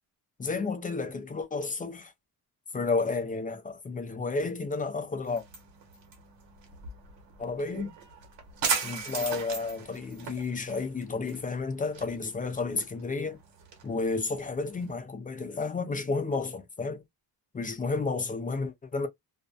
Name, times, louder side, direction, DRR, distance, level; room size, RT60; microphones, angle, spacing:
voice 1, 0.4-2.1 2.7-5.4 7.4-7.9 8.8-13.4 13.8-17.0 17.5-19.1, left 4 dB, 20° left, 0.4 m, -31 dB
sound 1, 5.2-14.9, right 5 dB, 75° right, 1.2 m, -38 dB
2.5 x 2.1 x 2.3 m
cardioid pair, 135°, 42 cm